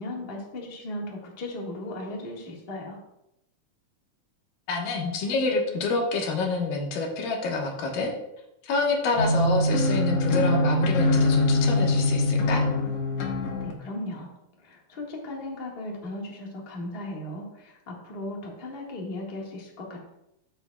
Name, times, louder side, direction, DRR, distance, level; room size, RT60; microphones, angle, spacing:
voice 1, 0.0-3.0 13.6-14.3 14.6-20.1, left 1 dB, 30° left, -2 dB, 1.2 m, -37 dB
voice 2, 4.7-8.1 8.6-12.6, left 3 dB, 90° left, 1 dB, 3.0 m, -27 dB
sound 1, 9.1-13.7, left 2 dB, 60° left, 1.9 m, -23 dB
13.0 x 6.9 x 2.3 m, 0.86 s
omnidirectional pair, 3.7 m